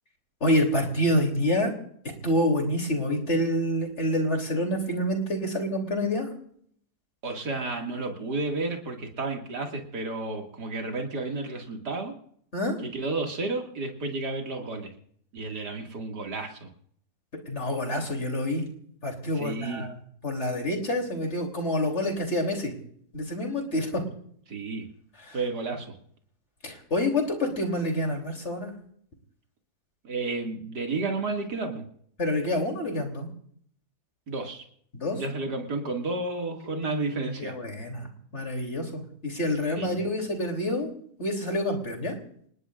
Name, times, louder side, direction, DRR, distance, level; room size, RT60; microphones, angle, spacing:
voice 1, 0.4-1.7 2.2-6.3 12.5-12.8 17.5-18.7 19.0-22.7 23.1-24.0 25.2-25.4 26.6-28.7 32.2-33.3 34.9-35.2 37.4-40.9 41.2-42.1, left 1 dB, 40° left, 2 dB, 3.5 m, -27 dB
voice 2, 7.2-12.1 12.8-14.9 15.3-16.7 19.4-19.9 24.5-24.9 25.3-25.9 30.0-31.8 34.3-34.6 35.1-37.6 39.8-40.0, right 3 dB, 70° right, 2 dB, 2.8 m, -32 dB
27.5 x 19.5 x 2.5 m, 0.64 s
omnidirectional pair, 1.8 m